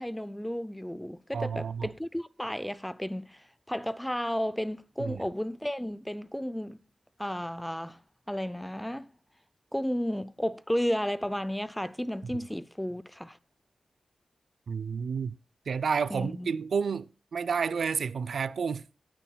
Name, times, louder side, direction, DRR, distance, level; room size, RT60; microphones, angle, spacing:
voice 1, 0.0-6.8 7.2-8.0 8.3-9.1 9.7-13.4 16.1-16.5, equal, 5° left, 0.5 m, -33 dB
voice 2, 1.3-1.9 5.0-5.3 14.7-15.4 15.7-18.9, right 6 dB, 70° right, 0.5 m, -30 dB
18.0 x 9.2 x 2.3 m
wide cardioid pair, 110°, 0 cm